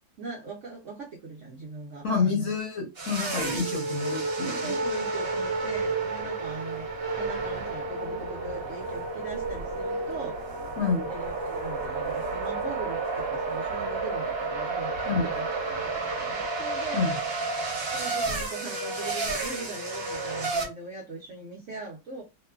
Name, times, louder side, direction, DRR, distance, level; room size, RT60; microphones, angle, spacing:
voice 1, 0.2-2.5 4.4-10.4 11.1-17.1 17.9-22.2, right 3 dB, 70° right, 0.7 m, -40 dB
voice 2, 2.0-4.7 10.8-11.0 15.1-15.3 16.9-17.1, left 4 dB, 55° left, 1.0 m, -28 dB
sound 1, 3.0-20.7, right 3 dB, 40° right, 1.0 m, -31 dB
3.0 x 2.2 x 2.2 m
omnidirectional pair, 2.0 m